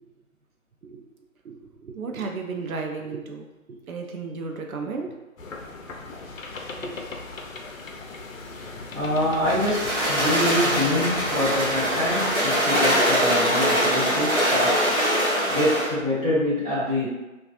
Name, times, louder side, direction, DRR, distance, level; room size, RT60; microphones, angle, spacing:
voice 1, 1.8-3.5 3.9-5.1 6.8-7.0, right 4 dB, 80° right, 3 dB, 0.6 m, -33 dB
sound 1, 5.4-12.4, left 3 dB, 70° left, 0.5 m, -38 dB
voice 2, 8.9-14.9 15.5-17.0, left 1 dB, 30° right, -13 dB, 1.0 m, -25 dB
sound 2, 9.4-15.9, equal, 60° right, 1.1 m, -23 dB
2.4 x 2.3 x 2.5 m, 1.1 s
figure-of-eight pair, 175°, 42 cm